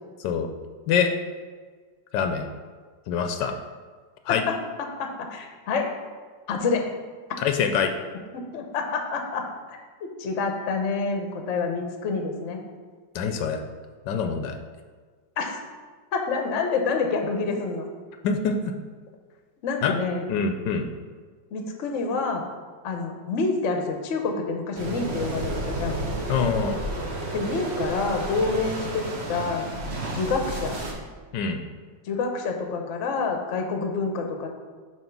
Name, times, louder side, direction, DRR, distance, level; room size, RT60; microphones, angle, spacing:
voice 1, 2.1-2.5 3.1-3.5 4.3-4.4 7.4-7.9 13.1-13.6 14.1-14.6 18.2-18.7 19.8-19.9 20.3-20.9 26.3-26.8 31.3-31.6, left 6 dB, 80° left, 5 dB, 1.2 m, -25 dB
voice 2, 4.3-5.9 6.5-6.9 8.3-12.6 15.4-15.6 16.1-17.9 19.6-20.3 21.5-22.4 22.8-26.0 27.3-29.6 30.1-30.8 32.1-34.5, left 4 dB, 55° left, 3 dB, 0.9 m, -28 dB
sound 1, 24.7-30.9, right 1 dB, 45° right, 1.1 m, -31 dB
7.0 x 3.1 x 5.9 m, 1.5 s
omnidirectional pair, 1.9 m